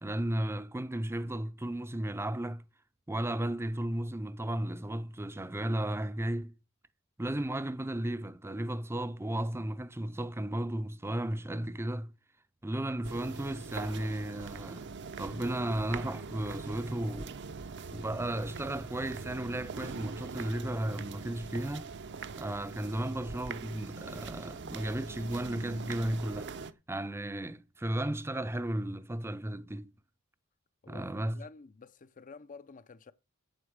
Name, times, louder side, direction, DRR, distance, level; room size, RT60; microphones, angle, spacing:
voice 1, 0.0-2.6 3.1-6.5 7.2-12.1 12.6-14.9 15.2-17.4 17.9-21.9 22.4-26.5 26.9-29.9 30.9-31.4, right 1 dB, 10° right, 0.6 m, -34 dB
sound 1, 13.0-26.7, right 5 dB, 55° right, 0.7 m, -43 dB
voice 2, 30.8-33.1, left 4 dB, 35° left, 0.5 m, -50 dB
8.3 x 7.9 x 6.5 m
head